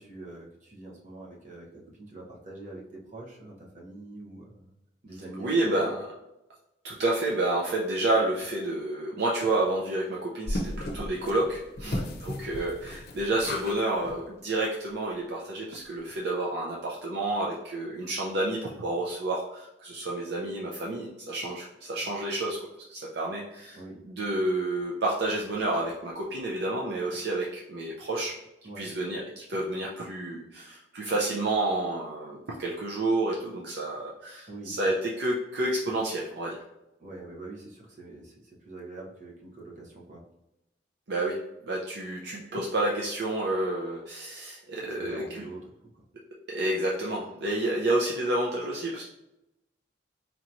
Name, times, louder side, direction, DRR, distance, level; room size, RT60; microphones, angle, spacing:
voice 1, 0.0-4.7 5.0-6.0 11.8-12.1 23.7-24.0 28.6-28.9 34.5-34.8 37.0-40.2 44.8-45.7, right 2 dB, 45° right, -3 dB, 1.0 m, -44 dB
voice 2, 5.4-6.1 6.8-23.8 24.0-28.3 28.8-36.6 41.1-45.2 46.5-49.0, right 2 dB, 65° right, -3 dB, 0.6 m, -30 dB
sound 1, 10.5-13.8 14.0-14.2 14.6-14.7 15.0-15.1, left 1 dB, 60° left, 0.6 m, -35 dB
4.5 x 3.0 x 2.6 m, 0.92 s
head